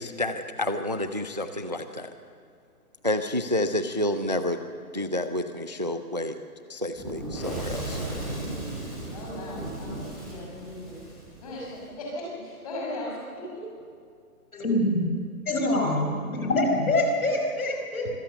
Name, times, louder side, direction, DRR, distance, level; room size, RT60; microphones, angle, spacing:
voice 1, 0.0-2.1 3.0-4.6 4.9-6.4 6.7-8.0, left 1 dB, 30° right, 10 dB, 0.5 m, -29 dB
Fire / Explosion, 6.9-11.8, right 1 dB, 5° left, 1.0 m, -35 dB
voice 2, 9.1-11.0 11.4-13.7, left 1 dB, 25° left, -3 dB, 6.2 m, -37 dB
voice 3, 14.5-15.1 15.5-18.1, left 1 dB, 65° left, 2 dB, 6.0 m, -25 dB
25.5 x 16.5 x 6.8 m, 2.2 s
hypercardioid pair, 175°, 46 cm